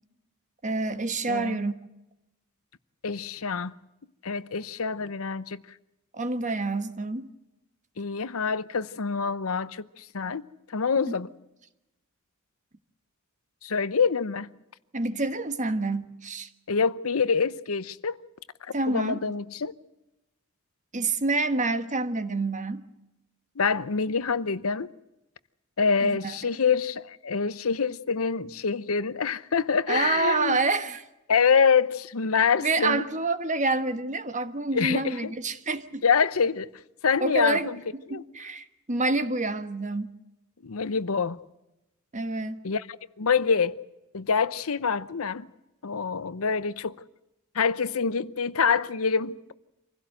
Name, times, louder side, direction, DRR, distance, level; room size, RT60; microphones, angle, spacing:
voice 1, 0.6-1.7 6.1-7.3 11.0-11.2 14.9-16.5 18.7-19.2 20.9-22.8 26.0-26.3 29.9-31.0 32.6-36.0 37.2-40.1 42.1-42.6, right 3 dB, 35° right, 1.3 m, -28 dB
voice 2, 1.3-1.6 3.0-3.7 4.2-5.6 8.0-11.3 13.6-14.5 16.7-18.2 18.9-19.7 23.6-24.9 25.8-30.6 31.3-33.0 34.7-35.3 36.0-36.7 37.0-37.8 38.1-38.2 40.6-41.4 42.6-42.9 43.2-43.7 44.1-45.5 45.8-47.0 47.5-49.5, left 5 dB, 75° left, 0.8 m, -26 dB
26.0 x 16.5 x 7.9 m
head